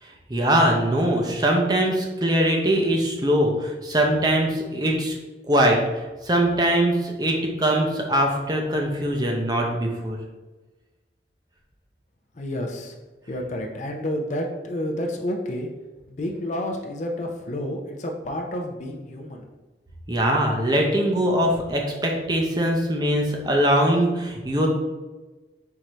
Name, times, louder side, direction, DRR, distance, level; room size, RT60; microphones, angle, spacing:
voice 1, 0.3-5.1 5.5-5.8 6.2-10.2 20.1-24.7, right 1 dB, 20° right, 0 dB, 0.6 m, -22 dB
voice 2, 12.4-12.9 13.3-15.7 16.1-19.4, left 1 dB, 40° left, 1 dB, 0.5 m, -30 dB
4.6 x 2.6 x 4.3 m, 1.2 s
head